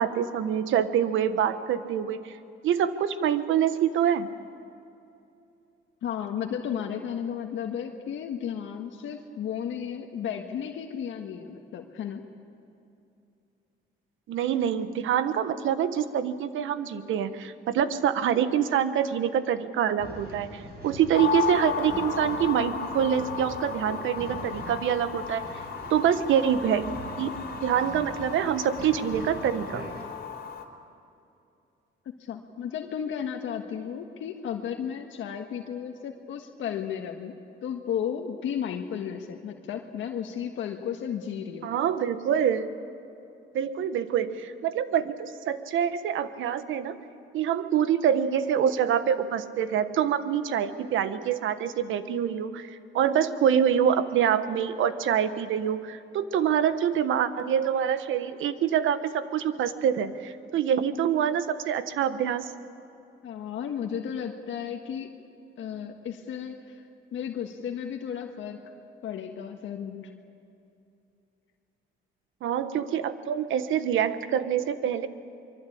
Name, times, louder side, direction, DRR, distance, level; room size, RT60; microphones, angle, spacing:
voice 1, 0.0-2.3 2.6-4.3 14.3-25.4 25.9-26.9 27.2-27.3 27.6-29.8 41.6-42.7 43.5-47.0 47.3-62.5 72.4-75.1, right 9 dB, 80° right, 11 dB, 1.3 m, -26 dB
voice 2, 6.0-12.2 32.0-41.7 63.2-65.1 65.6-66.8 67.1-68.7 69.0-70.1, left 8 dB, 75° left, 3 dB, 1.7 m, -34 dB
Male speech man speaking / Chatter / Rattle, 20.0-30.0, right 2 dB, 50° right, 6.9 m, -43 dB
sound 1, 21.1-30.6, left 7 dB, 50° left, 3.3 m, -34 dB
24.0 x 23.5 x 8.6 m, 2.7 s
cardioid pair, 90°, 20 cm